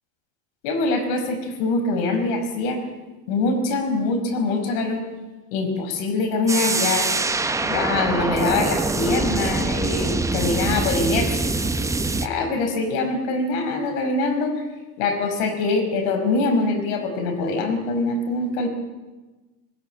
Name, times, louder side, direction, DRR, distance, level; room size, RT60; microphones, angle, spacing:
voice 1, 0.6-2.8 3.3-5.0 5.5-7.2 7.6-11.5 12.2-14.6 15.0-18.7, left 3 dB, 75° left, 6 dB, 5.1 m, -24 dB
sound 1, 6.5-12.3, right 3 dB, 10° right, 0.9 m, -24 dB
21.0 x 21.0 x 8.9 m, 1.2 s
cardioid pair, 140°, 40 cm